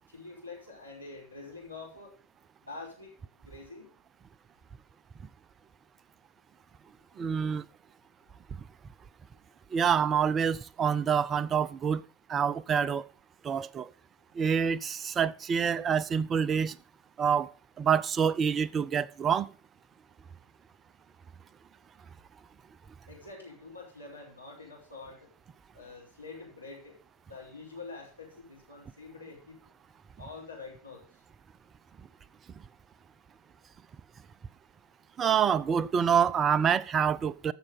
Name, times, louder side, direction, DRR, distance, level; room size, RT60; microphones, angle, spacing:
voice 1, 0.1-2.1 2.6-3.1 3.4-3.9 23.1-25.3 25.7-27.0 27.3-29.6 30.2-31.2, left 3 dB, 90° left, 5.5 m, -46 dB
voice 2, 7.2-7.7 9.7-12.0 12.3-13.1 13.4-13.9 14.3-16.8 17.2-17.5 17.8-19.5 35.2-37.5, right 7 dB, 25° right, 0.6 m, -26 dB
15.0 x 6.3 x 5.5 m
figure-of-eight pair, 90°, 0 cm